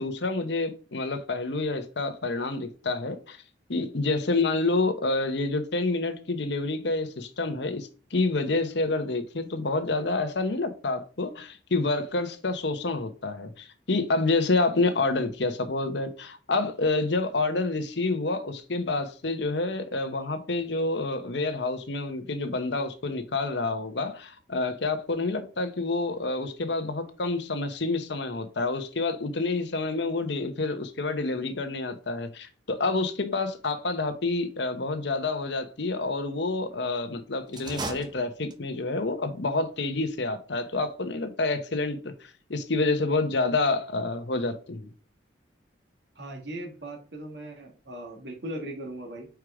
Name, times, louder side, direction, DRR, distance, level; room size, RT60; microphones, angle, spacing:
voice 1, 0.0-3.4 3.7-44.9, left 3 dB, 65° left, 0.9 m, -28 dB
sound 1, 37.5-38.9, right 3 dB, 20° right, 0.6 m, -37 dB
voice 2, 46.2-49.3, right 1 dB, 60° right, 1.8 m, -38 dB
4.9 x 4.6 x 4.8 m
head